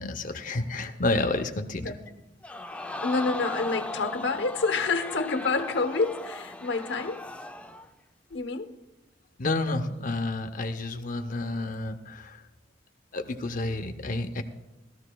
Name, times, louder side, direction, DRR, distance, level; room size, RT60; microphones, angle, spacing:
voice 1, 0.0-1.9 9.4-12.5 13.1-14.4, left 2 dB, 45° left, 0.7 m, -30 dB
Crowd, 2.4-7.9 8.3-8.4, left 2 dB, 5° left, 0.5 m, -37 dB
voice 2, 3.0-7.2 8.3-8.7, left 4 dB, 70° left, 1.0 m, -28 dB
18.5 x 13.5 x 2.3 m
head